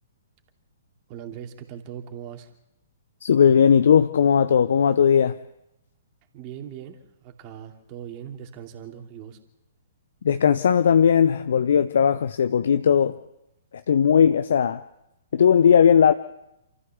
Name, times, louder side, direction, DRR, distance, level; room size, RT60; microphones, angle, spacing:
voice 1, 1.1-2.5 6.3-9.4, right 9 dB, 35° right, 4 dB, 2.6 m, -40 dB
voice 2, 3.2-5.4 10.2-13.2 13.9-14.8 15.3-16.1, left 7 dB, 60° left, 11 dB, 0.7 m, -18 dB
28.0 x 14.0 x 7.2 m, 0.89 s
figure-of-eight pair, 120°, 0 cm